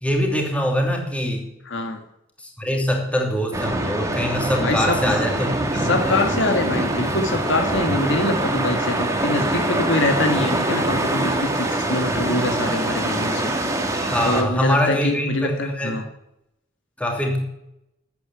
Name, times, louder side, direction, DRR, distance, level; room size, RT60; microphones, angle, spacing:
voice 1, 0.0-1.4 2.6-6.2 13.9-16.0 17.0-17.4, equal, 5° left, 1 dB, 2.8 m, -23 dB
voice 2, 1.7-2.0 4.6-5.0 5.8-13.5 14.2-16.1, left 2 dB, 65° left, 6 dB, 1.8 m, -24 dB
sound 1, 3.5-14.4, right 1 dB, 15° right, 1.9 m, -24 dB
13.0 x 8.6 x 9.0 m, 0.83 s
head